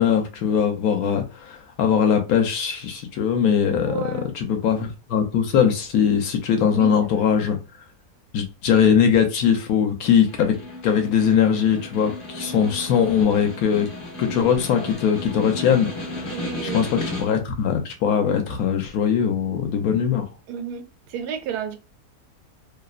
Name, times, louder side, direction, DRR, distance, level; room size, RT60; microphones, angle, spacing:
voice 1, 0.0-4.0 4.3-7.6 8.3-10.5 10.8-13.9 14.2-16.3 16.6-20.3, left 7 dB, 70° left, 1.0 m, -21 dB
voice 2, 3.8-4.3 6.7-7.3 14.6-15.1 16.3-16.9 20.5-21.8, right 8 dB, 90° right, 1.1 m, -33 dB
Snare drum, 10.1-17.5, left 1 dB, 45° left, 0.8 m, -34 dB
2.9 x 2.0 x 2.4 m
omnidirectional pair, 1.7 m